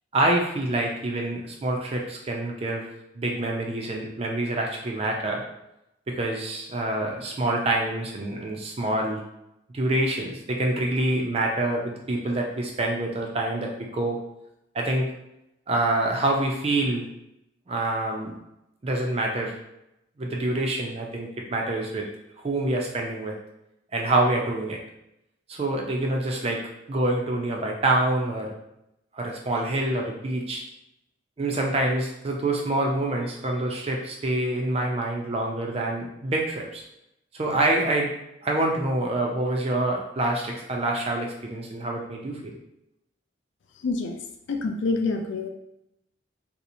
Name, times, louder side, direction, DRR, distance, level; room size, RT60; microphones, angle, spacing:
voice 1, 0.1-2.8 3.1-5.4 6.1-9.2 9.7-14.2 14.7-15.1 15.7-17.1 17.7-18.4 18.8-19.5 20.2-22.1 22.4-23.3 23.9-24.8 25.5-26.6 26.9-28.5 29.1-30.6 31.4-36.8 37.3-38.1 38.4-42.5, right 2 dB, 30° right, 0 dB, 0.4 m, -26 dB
voice 2, 43.8-44.2 44.5-45.5, left 3 dB, 70° left, 4 dB, 0.3 m, -26 dB
2.8 x 2.0 x 2.5 m, 0.85 s
head